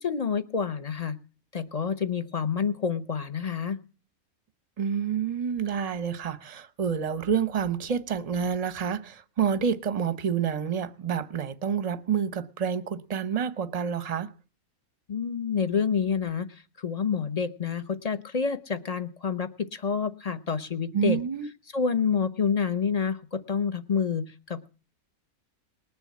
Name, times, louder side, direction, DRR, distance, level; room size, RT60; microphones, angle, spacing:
voice 1, 0.0-1.2 1.5-3.8 15.1-16.5 16.8-21.2 21.7-24.7, left 6 dB, 35° left, 0.7 m, -28 dB
voice 2, 4.8-14.3 20.9-21.5, right 7 dB, 35° right, 0.7 m, -28 dB
20.0 x 7.0 x 8.4 m
omnidirectional pair, 1.5 m